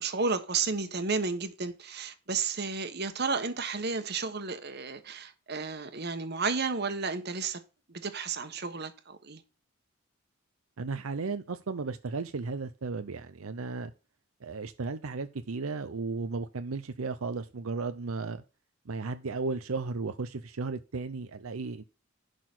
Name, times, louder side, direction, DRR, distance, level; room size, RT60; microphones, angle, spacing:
voice 1, 0.0-7.6 7.9-9.4, right 4 dB, 50° right, 1.4 m, -32 dB
voice 2, 10.8-13.9 14.4-18.4 18.9-21.8, right 4 dB, 90° right, 0.7 m, -35 dB
11.0 x 4.1 x 6.1 m
head